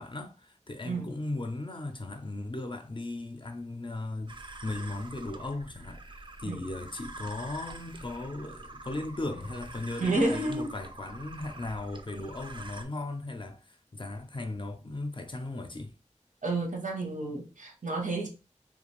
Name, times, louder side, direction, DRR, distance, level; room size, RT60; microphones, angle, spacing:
voice 1, 0.0-6.0 6.4-15.9, left 2 dB, 40° left, 0.4 m, -37 dB
sound 1, 4.3-12.8, right 2 dB, 40° right, 0.4 m, -45 dB
voice 2, 10.0-10.7 16.4-18.3, right 2 dB, 85° right, 0.7 m, -30 dB
2.4 x 2.3 x 3.0 m
wide cardioid pair, 45°, 13 cm